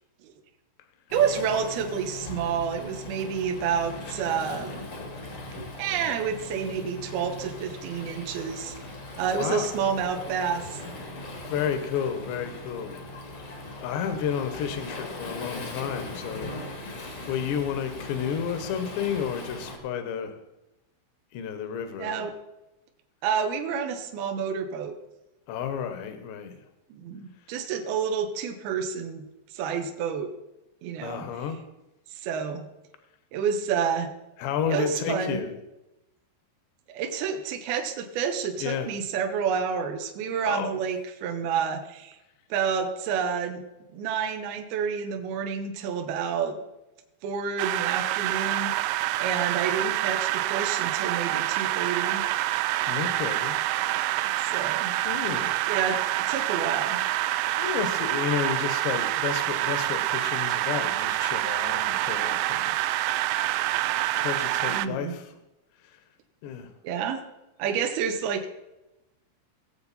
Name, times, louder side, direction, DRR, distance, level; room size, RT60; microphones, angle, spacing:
Waves surf, 1.1-19.8, left 2 dB, 50° left, 1.6 m, -39 dB
voice 1, 1.1-4.8 5.8-8.7 9.2-10.8 22.0-22.3 23.2-24.9 26.9-30.3 30.8-31.2 32.1-32.7 33.3-34.1 34.7-35.4 36.9-42.2 42.5-43.6 43.9-46.6 47.2-48.7 49.2-52.2 54.4-54.9 55.7-56.0 56.3-57.0 64.7-65.1 66.8-67.2 67.6-68.5, right 7 dB, 70° right, 4 dB, 2.5 m, -29 dB
voice 2, 9.4-9.7 11.5-13.0 13.8-16.5 17.3-20.4 21.3-22.3 25.5-26.6 31.0-31.6 34.4-35.5 38.6-38.9 40.4-40.8 52.9-53.6 55.0-55.6 57.6-62.7 64.1-65.3 66.4-66.7, left 8 dB, 70° left, 8 dB, 3.1 m, -31 dB
sound 1, 47.6-64.9, right 15 dB, 85° right, 3.1 m, -27 dB
19.5 x 7.8 x 4.2 m, 0.97 s
omnidirectional pair, 5.7 m